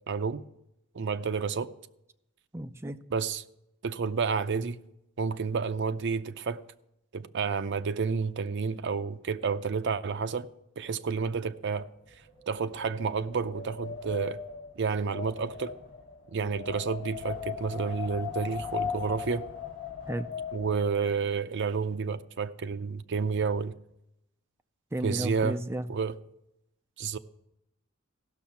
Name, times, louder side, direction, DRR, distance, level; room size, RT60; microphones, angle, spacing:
voice 1, 0.1-0.4 0.9-1.7 3.1-3.4 3.8-4.8 5.2-6.6 7.1-10.5 10.8-11.9 12.5-14.4 14.8-15.7 16.3-19.5 20.5-23.7 25.0-25.6 25.9-26.1 27.0-27.2, right 5 dB, 60° right, 0.5 m, -30 dB
voice 2, 2.5-3.0 20.1-20.3 24.9-25.9, right 1 dB, 10° right, 0.4 m, -33 dB
Wind, 12.0-21.2, left 7 dB, 25° left, 5.2 m, -39 dB
16.0 x 6.3 x 5.8 m
head